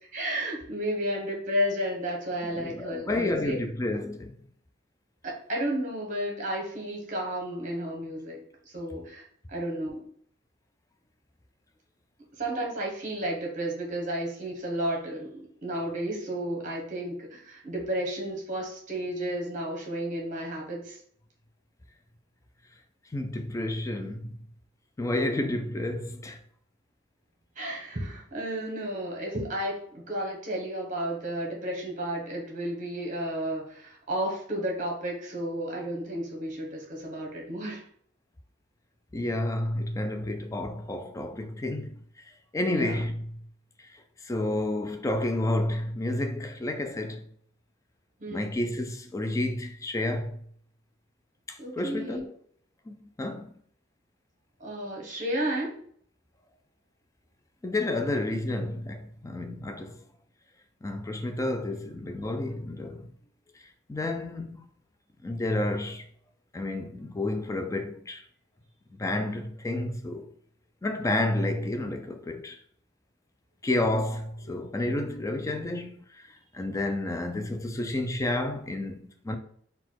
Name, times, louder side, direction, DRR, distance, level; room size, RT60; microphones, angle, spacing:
voice 1, 0.1-3.6 5.2-10.0 12.4-21.0 27.6-37.8 42.7-43.0 48.2-48.5 51.6-52.2 54.6-55.7 61.6-61.8 74.5-74.6 77.5-77.7, right 1 dB, 40° right, 1.0 m, -32 dB
voice 2, 2.5-4.3 23.1-24.4 25.0-26.4 39.1-42.0 42.5-43.3 43.9-47.3 48.3-50.4 51.5-52.3 52.9-53.5 57.6-60.0 60.8-63.1 63.9-64.6 65.2-66.1 66.5-68.2 68.9-70.3 70.8-72.6 73.6-76.2 76.5-79.4, left 1 dB, 15° left, 0.3 m, -30 dB
4.0 x 2.3 x 4.5 m
head